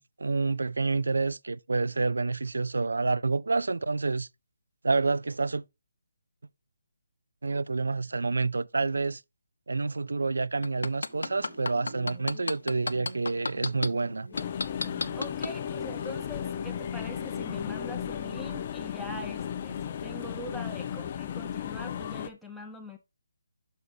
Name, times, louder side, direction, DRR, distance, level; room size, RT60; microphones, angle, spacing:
voice 1, 0.0-4.3 4.8-5.6 7.4-9.2 9.7-14.3, right 3 dB, 85° right, 0.4 m, -28 dB
sound 1, 10.6-13.9 14.4-15.5 16.0-16.1, left 3 dB, 80° left, 0.6 m, -30 dB
sound 2, 11.1-20.0, right 1 dB, 20° right, 2.2 m, -49 dB
sound 3, 14.3-22.3, left 9 dB, 30° left, 0.6 m, -35 dB
voice 2, 15.1-23.0, left 1 dB, ahead, 0.8 m, -43 dB
8.0 x 6.2 x 2.7 m
hypercardioid pair, 165°, 0 cm